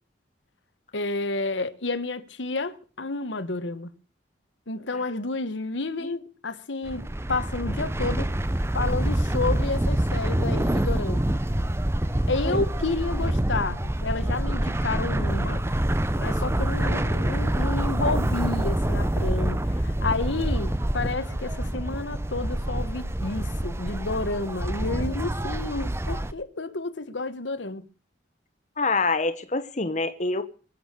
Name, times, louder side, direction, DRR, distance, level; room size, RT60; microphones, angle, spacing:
voice 1, 0.9-3.9 4.7-7.0 7.3-8.3 8.7-11.3 12.3-15.6 16.1-27.9, left 3 dB, 80° left, 1.2 m, -30 dB
sound 1, 6.9-26.3, right 1 dB, 15° right, 0.7 m, -26 dB
voice 2, 28.8-30.4, left 3 dB, 40° left, 1.3 m, -25 dB
22.5 x 8.7 x 6.7 m
head